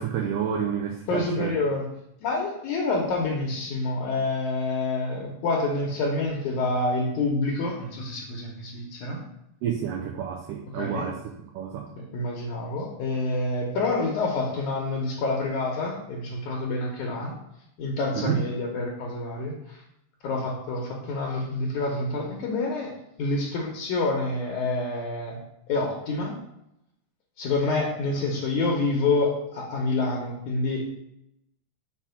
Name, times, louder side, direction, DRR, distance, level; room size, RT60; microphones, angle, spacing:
voice 1, 0.0-1.5 9.6-11.2 11.5-11.9 18.1-18.4, right 8 dB, 75° right, 1 dB, 2.0 m, -29 dB
voice 2, 1.1-1.8 2.2-9.2 10.7-11.1 11.8-17.3 17.8-19.8 20.2-22.9 23.2-25.4 25.7-26.4 27.4-30.9, left 2 dB, 70° left, -1 dB, 2.1 m, -27 dB
5.9 x 4.3 x 5.5 m, 0.81 s
omnidirectional pair, 4.0 m